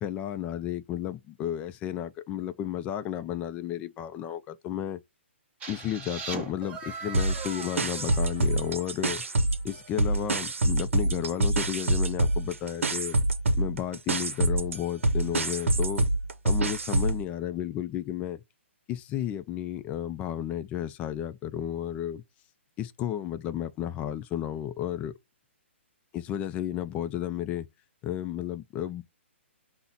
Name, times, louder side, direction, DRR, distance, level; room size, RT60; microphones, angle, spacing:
voice 1, 0.0-5.0 5.7-9.2 9.6-13.2 13.5-16.1 16.4-18.4 18.9-22.2 22.8-25.1 26.1-27.7 28.0-29.0, left 11 dB, 20° left, 0.3 m, -33 dB
sound 1, 5.6-9.3, right 5 dB, 20° right, 0.9 m, -40 dB
sound 2, 7.1-9.7 10.0-17.2, right 2 dB, 85° right, 0.7 m, -26 dB
5.5 x 2.1 x 3.9 m
hypercardioid pair, 140°, 7 cm